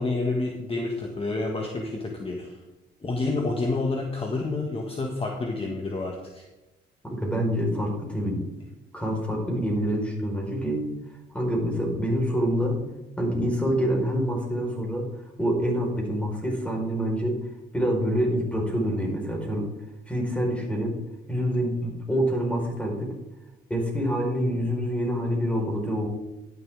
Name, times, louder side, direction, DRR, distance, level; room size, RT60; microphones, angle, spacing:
voice 1, 0.0-2.6 3.0-6.4, left 3 dB, 30° left, 1 dB, 1.8 m, -29 dB
voice 2, 7.0-8.5 8.9-10.9 11.3-12.8 13.2-15.1 15.4-17.4 17.7-19.7 20.1-21.0 21.3-23.1 23.7-26.1, equal, 5° left, -1 dB, 4.7 m, -26 dB
11.5 x 11.0 x 3.7 m, 1.0 s
cardioid pair, 90°, 20 cm